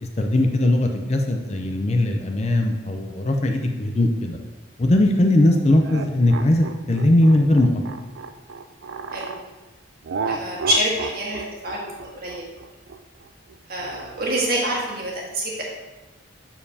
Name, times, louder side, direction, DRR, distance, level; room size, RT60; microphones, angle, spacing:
voice 1, 0.0-4.4 4.8-7.8, left 1 dB, 35° left, 4 dB, 0.5 m, -19 dB
sound 1, 5.8-9.4 10.0-14.6, right 4 dB, 70° right, 0.4 m, -33 dB
voice 2, 10.2-12.5 13.7-15.6, right 1 dB, 50° right, -3 dB, 1.6 m, -26 dB
7.2 x 6.7 x 2.8 m, 1.1 s
head